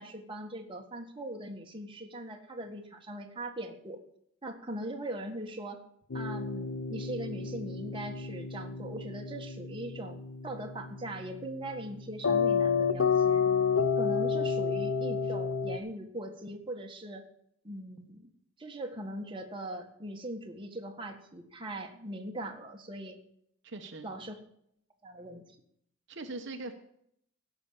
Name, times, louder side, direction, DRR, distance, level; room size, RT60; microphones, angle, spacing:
voice 1, 0.0-4.0 4.4-5.8 6.1-13.4 14.0-17.2 17.6-18.3 18.6-23.2 24.0-24.4 25.0-25.5, right 1 dB, 25° right, 2 dB, 1.6 m, -40 dB
sound 1, 6.1-15.8, left 6 dB, 80° left, 0.8 m, -30 dB
voice 2, 23.6-24.1 26.1-26.7, right 2 dB, 60° right, 5 dB, 1.1 m, -40 dB
16.5 x 6.2 x 7.0 m, 0.71 s
head